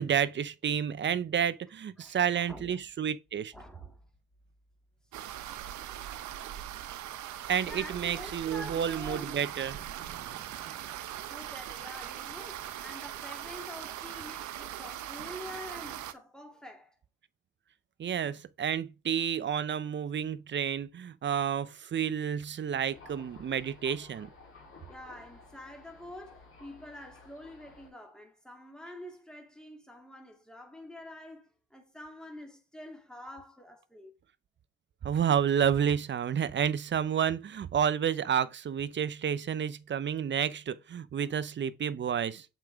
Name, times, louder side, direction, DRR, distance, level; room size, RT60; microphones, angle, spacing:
voice 1, 0.0-3.5 7.5-10.8 18.0-24.3 35.0-42.5, right 8 dB, 40° right, 0.6 m, -30 dB
voice 2, 2.0-2.8 3.5-4.1 7.7-9.5 10.7-10.8 11.3-17.0 24.9-34.1 41.2-41.4, left 1 dB, ahead, 2.3 m, -47 dB
sound 1, 5.1-16.1, right 11 dB, 75° right, 0.7 m, -40 dB
Thunder, 22.9-27.9, left 3 dB, 45° left, 3.2 m, -54 dB
7.5 x 4.9 x 3.5 m
cardioid pair, 90°, 30 cm